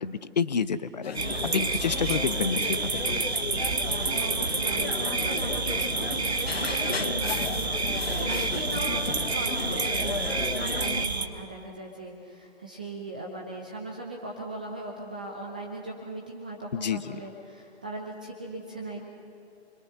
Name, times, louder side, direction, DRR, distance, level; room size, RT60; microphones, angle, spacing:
voice 1, 0.0-3.2 16.7-17.2, left 6 dB, 40° left, 14 dB, 0.8 m, -29 dB
sound 1, 1.0-11.1, left 5 dB, 60° left, 1.0 m, -34 dB
sound 2, 1.2-11.3, right 4 dB, 70° right, 1.5 m, -29 dB
voice 2, 3.9-9.0 9.3-19.0, right 2 dB, 10° right, 0 dB, 0.5 m, -39 dB
28.5 x 22.5 x 5.7 m, 2.4 s
figure-of-eight pair, 135°, 33 cm